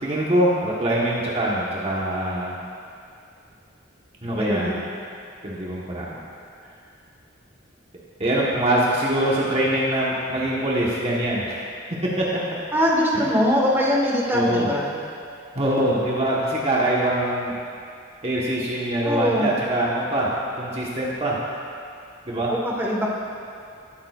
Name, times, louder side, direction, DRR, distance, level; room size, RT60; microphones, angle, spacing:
voice 1, 0.0-2.6 4.2-4.8 5.4-6.2 8.2-11.7 12.0-12.4 13.1-13.3 14.3-14.7 15.5-17.5 18.2-20.3 20.6-21.4 22.3-22.5, right 1 dB, 30° right, -5 dB, 1.2 m, -23 dB
voice 2, 4.4-4.7 12.7-14.9 19.0-19.5 22.5-23.1, equal, 10° right, -4 dB, 1.5 m, -22 dB
19.5 x 8.6 x 2.4 m, 2.4 s
head